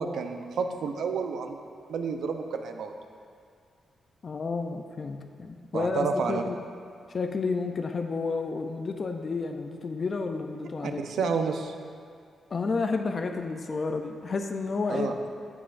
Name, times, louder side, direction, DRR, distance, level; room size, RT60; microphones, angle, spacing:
voice 1, 0.0-1.6 1.9-2.9 5.7-6.4 10.8-11.7 14.9-15.1, right 5 dB, 70° right, 5 dB, 0.6 m, -30 dB
voice 2, 4.2-6.6 7.1-11.3 12.5-15.1, left 4 dB, 30° left, 4 dB, 0.4 m, -31 dB
13.0 x 7.2 x 2.5 m, 2.2 s
wide cardioid pair, 180°, 0 cm